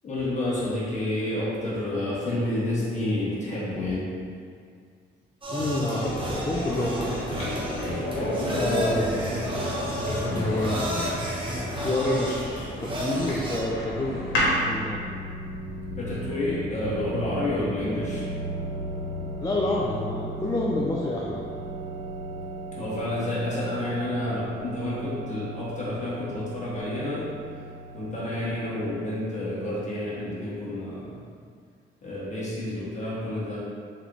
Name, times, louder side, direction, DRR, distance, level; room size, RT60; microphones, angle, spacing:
voice 1, 0.0-4.1 16.0-18.3 22.8-27.2 27.9-31.2 32.0-33.6, left 1 dB, 35° left, -8 dB, 1.5 m, -29 dB
sound 1, 5.4-13.6, equal, 25° right, 0.9 m, -32 dB
voice 2, 5.5-7.2 8.5-9.2 10.2-11.0 11.7-14.2 14.5-15.0 17.5-17.6 19.4-21.4 28.4-28.5, left 1 dB, 20° left, -5 dB, 0.4 m, -28 dB
sound 2, 6.0-14.6, left 1 dB, 85° left, 1.2 m, -31 dB
sound 3, 13.4-29.7, right 1 dB, 80° right, 1.2 m, -37 dB
3.8 x 3.2 x 3.1 m, 2.2 s
cardioid pair, 90°, 20 cm